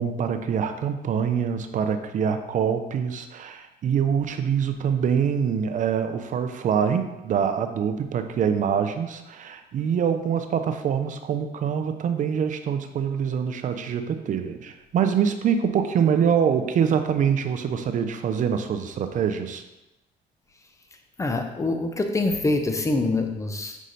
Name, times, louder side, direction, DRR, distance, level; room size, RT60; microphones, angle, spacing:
voice 1, 0.0-19.6, right 7 dB, 50° right, 7 dB, 0.7 m, -25 dB
voice 2, 21.2-23.8, left 2 dB, 20° left, 5 dB, 0.8 m, -25 dB
5.6 x 4.9 x 4.0 m, 0.95 s
cardioid pair, 110°, 17 cm